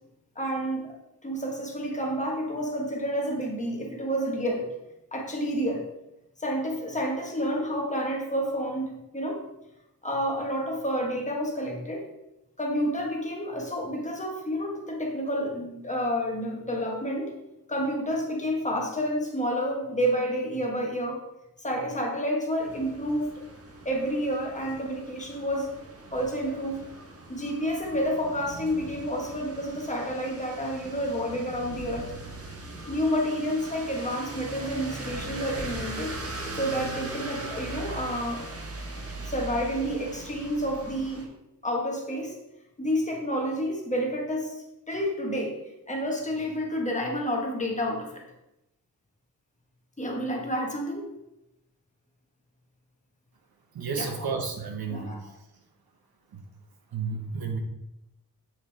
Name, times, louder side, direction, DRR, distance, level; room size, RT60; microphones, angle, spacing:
voice 1, 0.3-1.0 1.2-4.7 5.1-5.9 6.4-9.4 10.0-12.1 12.6-17.3 17.7-21.2 21.6-23.4 23.8-25.7 26.1-26.8 27.3-32.1 32.9-36.2 36.5-38.5 38.9-41.3 41.6-42.3 42.8-45.6 45.9-48.2 50.0-51.1 54.0-54.1 54.9-55.2, equal, 20° left, -1 dB, 1.4 m, -29 dB
sound 1, 22.6-41.2, right 2 dB, 40° right, 1.4 m, -40 dB
voice 2, 53.7-55.4 56.3-56.4 56.9-57.6, right 5 dB, 80° right, 3 dB, 1.4 m, -32 dB
8.3 x 6.9 x 3.5 m, 0.89 s
wide cardioid pair, 170°, 36 cm